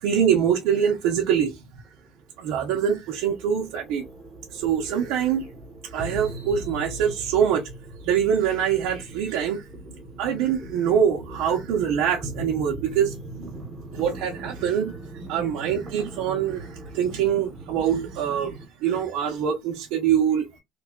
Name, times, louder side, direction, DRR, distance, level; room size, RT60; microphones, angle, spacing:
voice 1, 0.0-1.6 2.4-4.1 4.5-5.5 5.9-7.6 8.0-9.6 10.2-13.5 13.9-15.0 15.3-20.6, right 8 dB, 80° right, 0.7 m, -24 dB
sound 1, 1.8-18.7, right 1 dB, 15° right, 1.2 m, -40 dB
3.3 x 2.3 x 3.6 m
cardioid pair, 165°, 0 cm